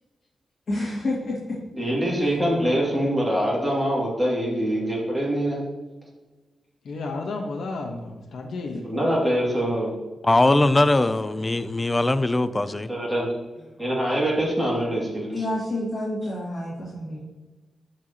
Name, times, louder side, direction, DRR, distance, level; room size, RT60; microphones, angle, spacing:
voice 1, 0.7-1.6 2.3-2.4 13.6-13.7 15.3-17.2, left 1 dB, 45° left, -8 dB, 2.3 m, -29 dB
voice 2, 1.8-5.6 8.8-9.9 12.9-13.3 13.8-15.4, equal, ahead, -5 dB, 2.3 m, -24 dB
voice 3, 6.8-8.8 10.4-10.8, left 3 dB, 75° left, 1 dB, 1.1 m, -32 dB
voice 4, 10.2-12.9, left 2 dB, 20° left, 14 dB, 0.4 m, -20 dB
13.0 x 4.8 x 2.9 m, 1.2 s
wide cardioid pair, 135°, 0 cm